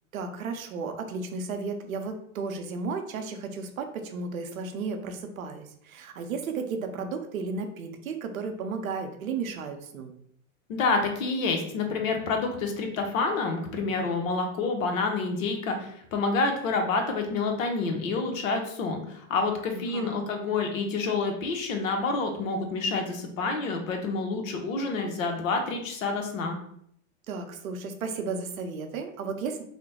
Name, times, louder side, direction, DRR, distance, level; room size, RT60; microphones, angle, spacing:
voice 1, 0.1-10.1 19.7-20.2 27.3-29.6, right 4 dB, 85° right, 5 dB, 0.7 m, -34 dB
voice 2, 10.7-26.6, left 3 dB, 75° left, 4 dB, 1.0 m, -28 dB
3.2 x 2.1 x 4.0 m, 0.68 s
hypercardioid pair, 100°, 40 cm